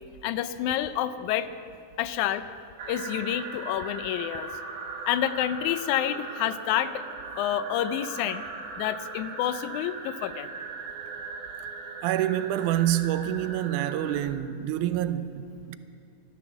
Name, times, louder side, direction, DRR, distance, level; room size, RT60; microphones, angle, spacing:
voice 1, 0.2-1.5 2.0-2.5 2.9-4.5 5.1-7.0 7.4-8.4 8.8-10.5, left 11 dB, 80° left, 2.0 m, -28 dB
sound 1, 2.8-14.2, right 4 dB, 60° right, 2.5 m, -39 dB
voice 2, 12.0-15.8, right 12 dB, 90° right, 2.1 m, -27 dB
13.5 x 13.0 x 7.1 m
omnidirectional pair, 3.5 m